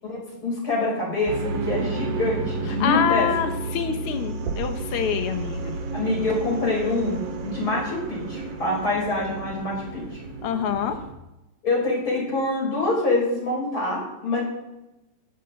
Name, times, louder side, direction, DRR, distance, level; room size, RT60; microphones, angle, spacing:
voice 1, 0.0-1.3 1.7-3.3 5.9-10.2 11.6-14.4, left 2 dB, 35° left, -4 dB, 6.6 m, -25 dB
sound 1, 1.3-11.1, right 3 dB, 55° right, 2.2 m, -31 dB
voice 2, 2.8-5.8 10.4-11.0, left 8 dB, 75° left, 7 dB, 1.3 m, -26 dB
15.0 x 12.0 x 4.0 m, 0.95 s
omnidirectional pair, 4.0 m